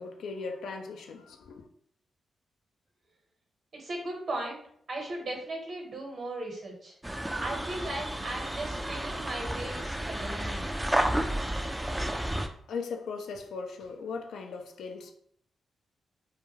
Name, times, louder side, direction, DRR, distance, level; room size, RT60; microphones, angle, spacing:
voice 1, 0.0-1.7 12.3-12.4 12.7-15.1, left 4 dB, 75° left, 0.4 m, -38 dB
voice 2, 3.7-4.6 4.9-6.9 7.4-10.7, right 2 dB, 60° right, 1.0 m, -37 dB
sound 1, 7.0-12.5, right 1 dB, 15° right, 0.3 m, -31 dB
2.3 x 2.2 x 3.0 m
supercardioid pair, 45°, 0 cm